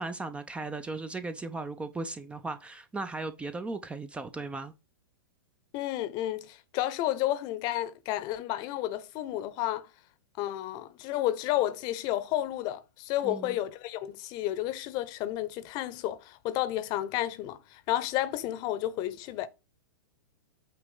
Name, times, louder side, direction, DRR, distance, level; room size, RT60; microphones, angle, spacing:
voice 1, 0.0-4.7 13.2-13.6, right 3 dB, 10° right, 0.6 m, -37 dB
voice 2, 5.7-9.9 10.4-19.5, left 14 dB, 35° left, 0.9 m, -31 dB
8.4 x 2.9 x 5.4 m
figure-of-eight pair, 105°, 12 cm